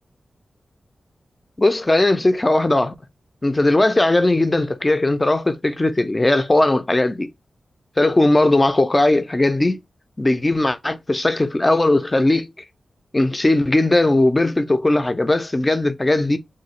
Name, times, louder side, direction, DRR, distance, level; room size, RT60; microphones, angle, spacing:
voice 1, 1.6-2.9 3.4-7.3 8.0-9.8 10.2-12.5 13.1-16.4, left 2 dB, 20° left, 0.3 m, -18 dB
2.8 x 2.6 x 2.9 m
wide cardioid pair, 180°, 0 cm